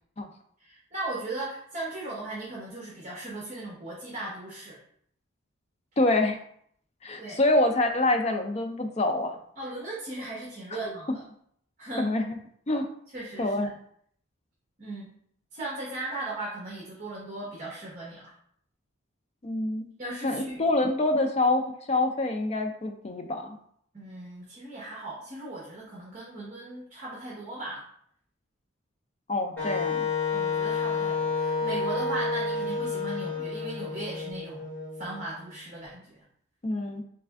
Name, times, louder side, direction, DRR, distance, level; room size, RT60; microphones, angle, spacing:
voice 1, 0.6-4.8 7.2-7.4 9.6-11.2 11.8-12.1 13.1-13.7 14.8-15.1 15.5-18.3 20.0-20.6 23.9-27.9 30.3-34.7 35.0-36.2, right 2 dB, 35° right, -4 dB, 0.8 m, -37 dB
voice 2, 6.0-6.4 7.0-9.4 12.0-12.4 12.7-12.9 13.4-13.7 19.4-19.9 20.2-23.6 29.3-30.1 36.6-37.0, left 2 dB, 30° left, 5 dB, 0.4 m, -26 dB
Wind instrument woodwind instrument, 29.6-35.4, left 4 dB, 10° left, 1.6 m, -30 dB
3.4 x 3.3 x 3.4 m, 0.65 s
head